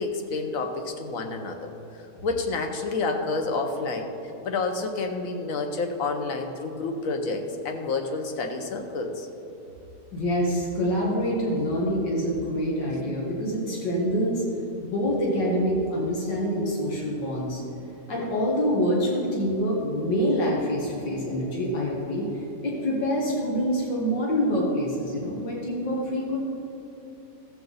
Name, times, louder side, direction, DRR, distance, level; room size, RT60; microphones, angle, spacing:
voice 1, 0.0-1.7 2.2-4.1 4.4-9.3, left 3 dB, 55° left, 4 dB, 1.3 m, -29 dB
voice 2, 10.1-14.4 14.8-17.6 18.1-26.4, equal, 85° left, -3 dB, 2.4 m, -26 dB
15.5 x 7.7 x 4.0 m, 2.9 s
omnidirectional pair, 1.9 m